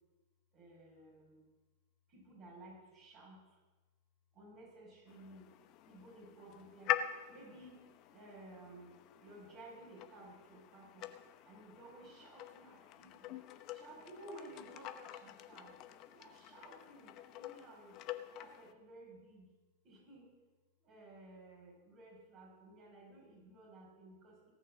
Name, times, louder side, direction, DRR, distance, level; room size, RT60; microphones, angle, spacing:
voice 1, 0.5-1.4 2.1-3.4 4.3-5.5 5.9-7.0 7.3-7.8 8.1-8.9 9.2-11.1 11.5-13.3 13.7-15.7 16.1-18.0 18.4-19.5 19.8-20.3 20.8-24.4, right 2 dB, 40° right, -3 dB, 5.7 m, -55 dB
sound 1, 5.1-18.7, left 12 dB, 45° left, 0.9 m, -45 dB
17.5 x 6.4 x 7.4 m, 1.3 s
hypercardioid pair, 95°, 0 cm